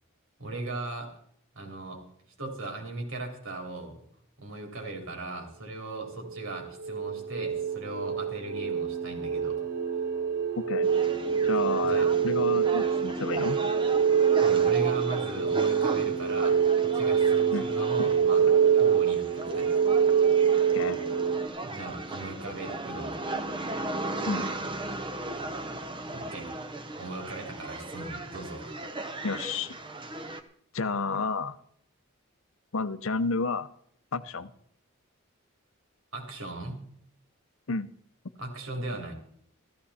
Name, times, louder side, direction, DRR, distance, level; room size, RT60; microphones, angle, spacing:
voice 1, 0.4-1.1 1.5-2.0 2.4-4.0 4.4-9.6 11.8-12.1 14.4-18.4 18.7-19.7 21.6-23.2 26.1-26.5 27.0-28.8 36.1-36.8 38.4-39.1, right 2 dB, 70° right, 2 dB, 3.4 m, -38 dB
sound 1, 6.3-21.5, right 7 dB, 90° right, 1.7 m, -25 dB
voice 2, 10.6-10.9 11.4-13.6 17.5-17.7 18.0-18.1 20.7-21.0 24.3-24.5 29.2-29.8 30.7-31.6 32.7-33.7 34.1-34.5 37.7-37.9, left 4 dB, 70° left, 13 dB, 0.7 m, -31 dB
sound 2, 10.8-30.4, right 2 dB, 20° right, 0.8 m, -37 dB
14.5 x 14.0 x 4.2 m, 0.65 s
head